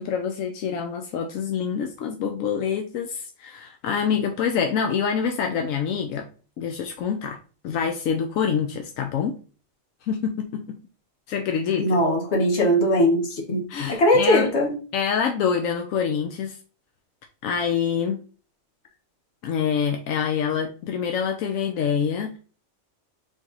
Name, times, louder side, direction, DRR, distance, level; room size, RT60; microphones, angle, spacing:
voice 1, 0.0-6.3 6.6-7.4 7.6-9.4 10.1-10.8 11.3-11.9 13.7-14.5 14.9-16.6 17.4-18.2 19.4-22.4, left 7 dB, 85° left, 1.0 m, -26 dB
voice 2, 11.8-14.8, left 1 dB, 60° left, 1.4 m, -20 dB
4.6 x 3.0 x 3.7 m
omnidirectional pair, 1.4 m